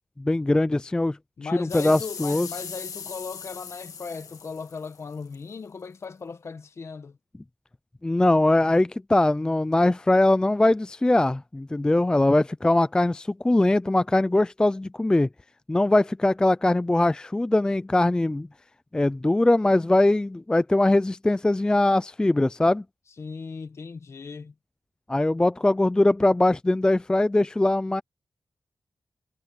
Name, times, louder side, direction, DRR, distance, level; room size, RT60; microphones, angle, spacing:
voice 1, 0.2-1.2 1.5-2.5 8.0-15.3 15.7-18.5 18.9-22.8 25.1-28.0, left 2 dB, 15° left, 0.3 m, -21 dB
voice 2, 1.4-7.2 23.2-24.5, left 5 dB, 50° left, 1.3 m, -37 dB
sound 1, 1.7-5.4 6.0-6.1, left 6 dB, 75° left, 1.6 m, -39 dB
wide cardioid pair, 120°, 6 cm